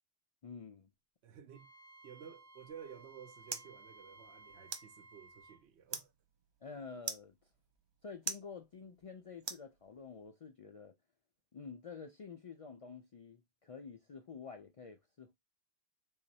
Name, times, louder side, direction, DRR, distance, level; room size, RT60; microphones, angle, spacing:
voice 1, 0.4-0.9 6.6-7.4 8.0-10.9 11.5-15.4, left 5 dB, 55° left, 0.4 m, -49 dB
voice 2, 1.2-1.7 2.0-6.1, right 8 dB, 85° right, 1.0 m, -53 dB
Wind instrument woodwind instrument, 1.5-5.6, right 2 dB, 55° right, 1.5 m, -58 dB
sound 1, 2.7-10.2, right 5 dB, 40° right, 0.4 m, -47 dB
3.9 x 3.0 x 2.7 m
omnidirectional pair, 1.1 m